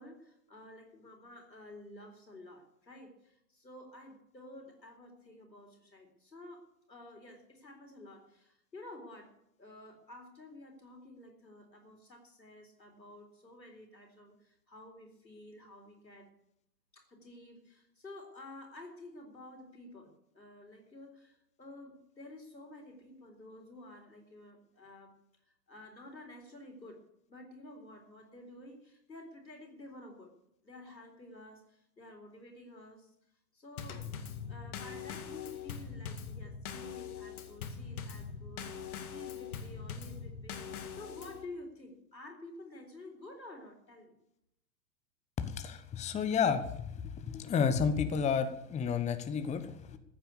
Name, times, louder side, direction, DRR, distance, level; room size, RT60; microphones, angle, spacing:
voice 1, 0.0-9.3 9.6-16.3 16.9-25.2 25.7-27.0 27.3-30.3 30.6-33.1 33.5-34.1 34.5-44.1, left 1 dB, 90° left, 3 dB, 4.1 m, -51 dB
Drum kit / Snare drum / Bass drum, 33.8-41.5, left 6 dB, 60° left, 2.1 m, -42 dB
voice 2, 45.4-46.9 47.3-50.0, left 6 dB, 15° left, 9 dB, 1.0 m, -31 dB
15.0 x 9.0 x 8.3 m, 0.78 s
figure-of-eight pair, 100°, 50 cm